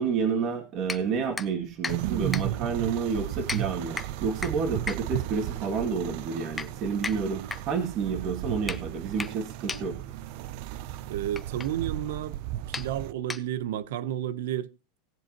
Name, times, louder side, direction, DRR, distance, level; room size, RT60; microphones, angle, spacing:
voice 1, 0.0-10.0, right 5 dB, 35° right, 2.3 m, -29 dB
sound 1, 0.8-13.9, left 4 dB, 10° left, 0.7 m, -39 dB
sound 2, 1.9-13.1, right 13 dB, 55° right, 0.6 m, -35 dB
voice 2, 11.1-12.4 12.7-14.7, right 11 dB, 75° right, 0.9 m, -31 dB
18.5 x 7.4 x 2.9 m
supercardioid pair, 160°, 0 cm